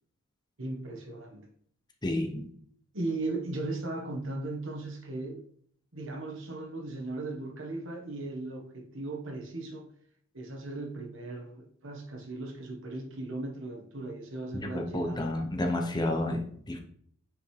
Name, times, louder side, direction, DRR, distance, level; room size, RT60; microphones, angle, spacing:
voice 1, 0.6-1.5 2.9-5.4 5.9-9.9 10.3-15.2 15.7-16.0, right 2 dB, 65° right, 1.4 m, -37 dB
voice 2, 2.0-2.5 14.5-16.8, left 1 dB, 20° left, 0.9 m, -30 dB
9.3 x 5.1 x 3.4 m
head